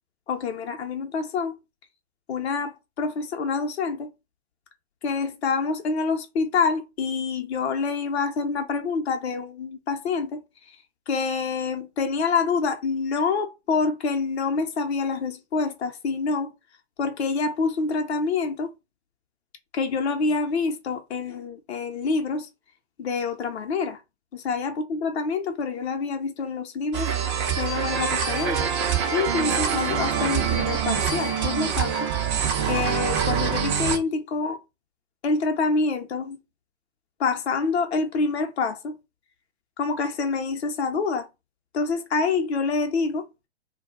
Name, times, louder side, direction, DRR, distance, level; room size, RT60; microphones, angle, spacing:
voice 1, 0.3-1.6 2.3-4.1 5.0-10.4 11.1-16.5 17.0-18.7 19.7-22.5 23.0-24.0 24.3-27.1 27.6-28.7 29.1-32.1 32.7-34.6 35.2-36.4 37.2-39.0 39.8-41.3 41.7-43.2, left 4 dB, 65° left, 0.8 m, -26 dB
sound 1, 26.9-34.0, right 7 dB, 25° right, 0.5 m, -25 dB
2.2 x 2.1 x 3.5 m
figure-of-eight pair, 115°, 36 cm